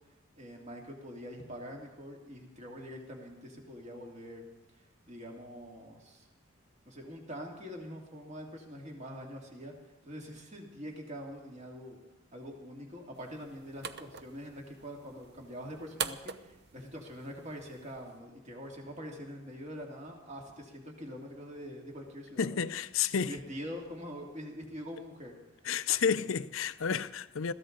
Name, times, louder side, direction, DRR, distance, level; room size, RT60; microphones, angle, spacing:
voice 1, 0.3-4.4 4.7-6.3 6.9-9.7 10.0-12.0 12.3-22.5 23.3-25.3 25.6-25.7, equal, 35° right, 2.6 m, -44 dB
sound 1, 13.2-18.2, right 7 dB, 55° right, 0.7 m, -44 dB
voice 2, 22.4-23.3 25.6-27.5, left 7 dB, 75° left, 0.6 m, -30 dB
21.5 x 14.5 x 4.0 m
head